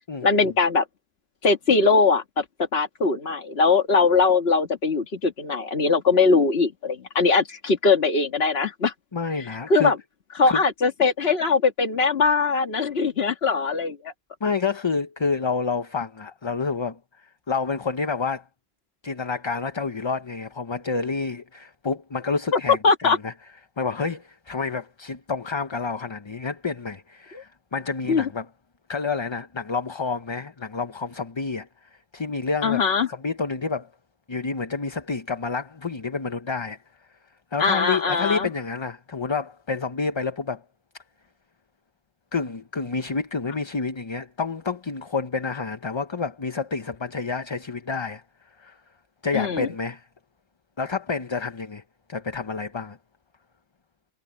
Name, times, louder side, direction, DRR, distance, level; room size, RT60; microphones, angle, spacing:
voice 1, 0.2-0.9 1.4-2.4 2.7-8.9 9.7-10.0 10.4-14.1 22.5-23.2 27.3-27.4 28.1-28.3 32.6-33.1 37.6-38.5 49.3-49.7, left 4 dB, 75° left, 1.9 m, -21 dB
voice 2, 9.1-9.9 10.5-10.6 14.4-18.4 19.0-23.3 23.8-28.5 28.9-32.8 33.1-33.9 34.3-36.8 37.5-40.6 42.3-48.8 49.2-50.1 50.8-51.8 52.1-53.0, left 4 dB, 30° left, 0.7 m, -29 dB
omnidirectional pair, 1.1 m